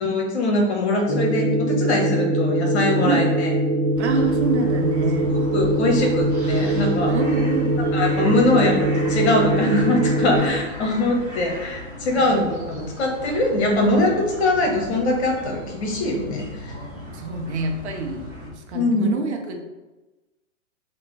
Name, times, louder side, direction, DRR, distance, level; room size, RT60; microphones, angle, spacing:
voice 1, 0.0-3.5 5.5-7.1 7.9-14.1 14.4-16.7 18.7-19.1, left 2 dB, 55° left, 0 dB, 1.0 m, -22 dB
sound 1, 1.1-10.4, right 1 dB, 10° left, 0.9 m, -22 dB
sound 2, 3.9-18.5, equal, 5° right, 0.4 m, -36 dB
voice 2, 4.0-5.3 7.0-7.9 10.3-10.5 12.3-12.4 17.1-19.6, right 4 dB, 60° right, 3 dB, 0.7 m, -27 dB
3.3 x 2.2 x 3.1 m, 1.1 s
figure-of-eight pair, 125°, 38 cm